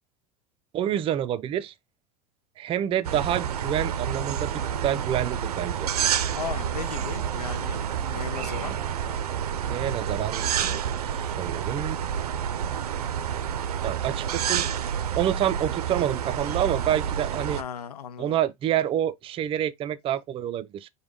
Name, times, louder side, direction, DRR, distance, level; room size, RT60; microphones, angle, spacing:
voice 1, 0.7-1.7 2.6-4.5 4.8-5.9 9.6-12.0 13.8-14.7 15.1-17.6 18.2-20.9, right 11 dB, 30° right, 0.4 m, -28 dB
sound 1, 3.0-17.6, right 8 dB, 85° right, 0.5 m, -29 dB
voice 2, 6.3-8.8 17.6-18.4, left 8 dB, 85° left, 0.6 m, -36 dB
5.1 x 2.2 x 4.6 m
hypercardioid pair, 90°, 19 cm